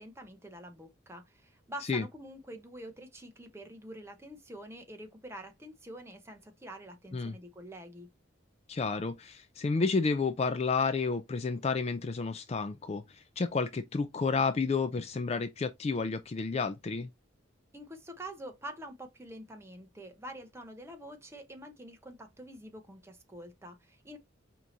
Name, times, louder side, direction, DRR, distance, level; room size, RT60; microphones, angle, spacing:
voice 1, 0.0-8.1 17.7-24.2, right 1 dB, 15° right, 0.8 m, -46 dB
voice 2, 8.7-17.1, left 4 dB, 30° left, 0.3 m, -31 dB
4.7 x 2.9 x 3.9 m
head